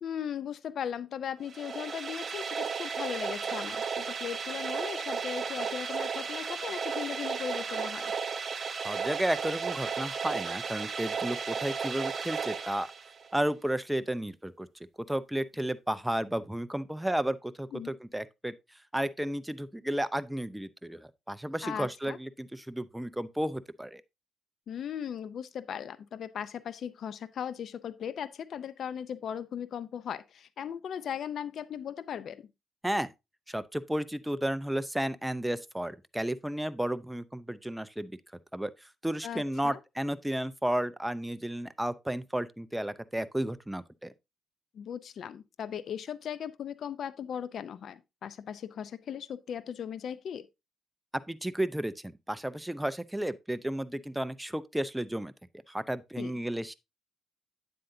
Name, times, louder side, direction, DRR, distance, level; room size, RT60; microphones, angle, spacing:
voice 1, 0.0-8.1 17.7-17.9 21.6-22.2 24.7-32.5 39.2-39.8 44.7-50.5 56.2-56.3, left 8 dB, 65° left, 0.5 m, -38 dB
sound 1, 1.4-13.4, right 5 dB, 40° right, 1.0 m, -34 dB
voice 2, 8.8-12.9 13.3-14.7 15.1-18.5 18.9-24.0 32.8-33.1 33.5-38.2 38.5-38.7 39.0-44.1 51.3-55.3 55.7-56.7, right 1 dB, 5° right, 0.6 m, -33 dB
9.2 x 7.8 x 2.7 m
cardioid pair, 90°, 0 cm